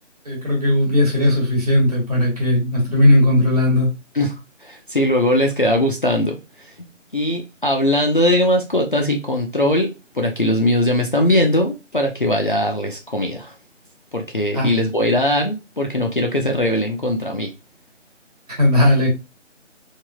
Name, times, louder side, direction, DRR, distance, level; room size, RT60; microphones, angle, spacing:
voice 1, 0.2-3.9 14.5-14.7 18.6-19.1, left 1 dB, 30° right, -2 dB, 1.1 m, -17 dB
voice 2, 4.6-6.4 7.1-13.5 14.1-17.5, left 1 dB, 45° left, 2 dB, 0.4 m, -20 dB
3.2 x 2.5 x 2.3 m, 0.26 s
figure-of-eight pair, 155°, 38 cm